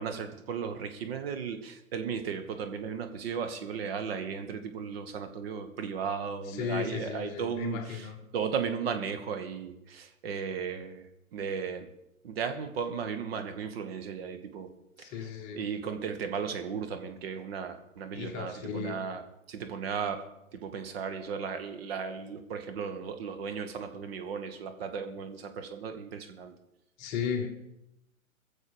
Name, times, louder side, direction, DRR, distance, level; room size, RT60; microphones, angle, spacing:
voice 1, 0.0-8.1 8.3-11.9 12.2-14.7 15.0-15.2 15.5-19.2 19.5-20.2 20.5-26.5, right 6 dB, 45° right, 1.6 m, -35 dB
voice 2, 6.5-8.2 15.0-15.7 18.1-19.0 27.0-27.5, left 7 dB, 25° left, 1.3 m, -35 dB
21.5 x 7.3 x 5.1 m
figure-of-eight pair, 125°, 41 cm